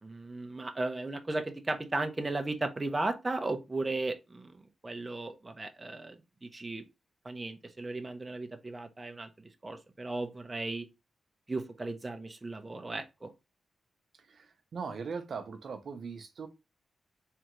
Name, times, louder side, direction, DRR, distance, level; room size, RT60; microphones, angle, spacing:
voice 1, 0.0-4.6 4.8-6.8 7.2-9.3 9.6-10.9 11.5-13.3, right 2 dB, 25° right, 0.7 m, -36 dB
voice 2, 14.7-16.5, right 5 dB, 65° right, 0.6 m, -39 dB
3.7 x 3.4 x 3.0 m
wide cardioid pair, 100°, 0 cm